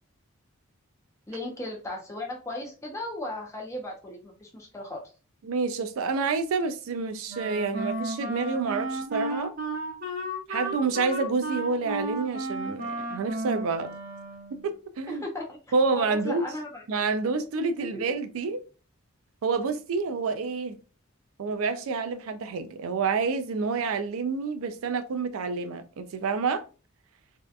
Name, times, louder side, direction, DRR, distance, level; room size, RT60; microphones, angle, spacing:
voice 1, 1.3-5.0 15.1-15.6 15.9-16.8 17.8-18.0, left 1 dB, 15° left, 0.6 m, -36 dB
voice 2, 5.4-9.5 10.5-13.9 14.5-15.2 15.7-16.4 16.9-18.6 19.4-20.8 21.4-26.6, right 4 dB, 75° right, 0.4 m, -28 dB
Wind instrument woodwind instrument, 7.3-14.7, right 1 dB, 45° right, 0.8 m, -33 dB
2.6 x 2.2 x 2.4 m
head